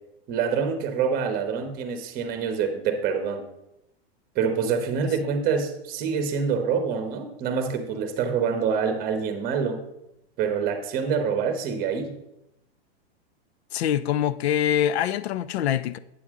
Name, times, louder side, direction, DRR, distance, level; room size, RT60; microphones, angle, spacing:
voice 1, 0.3-3.5 4.3-9.8 10.4-12.2, right 6 dB, 30° right, 1.1 m, -26 dB
voice 2, 13.7-16.0, left 10 dB, 85° left, 0.5 m, -24 dB
8.5 x 7.0 x 3.7 m
supercardioid pair, 145°, 31 cm